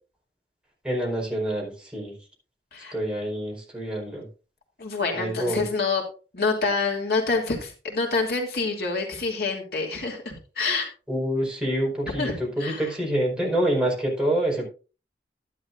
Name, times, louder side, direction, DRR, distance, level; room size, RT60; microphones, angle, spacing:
voice 1, 0.8-2.2 2.9-4.3 5.1-5.7 11.1-14.7, right 1 dB, 5° right, -3 dB, 4.4 m, -26 dB
voice 2, 4.8-6.0 6.3-10.9 12.2-12.3 12.6-12.9, left 4 dB, 60° left, 0 dB, 2.9 m, -27 dB
12.0 x 11.0 x 2.6 m, 0.34 s
head